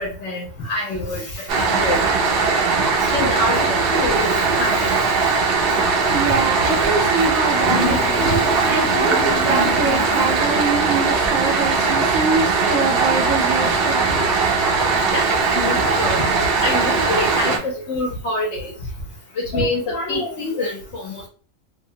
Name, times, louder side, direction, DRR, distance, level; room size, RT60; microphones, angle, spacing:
voice 1, 0.0-2.0 3.1-4.3 4.6-4.9 7.6-10.4 11.8-11.9 15.1-18.7 19.5-21.3, left 1 dB, 65° left, -1 dB, 0.9 m, -26 dB
sound 1, 1.5-17.6, right 4 dB, 60° right, 0.6 m, -19 dB
voice 2, 6.1-8.3 8.7-14.3, right 4 dB, 80° right, 1 dB, 1.0 m, -24 dB
2.8 x 2.1 x 2.6 m, 0.40 s
omnidirectional pair, 1.4 m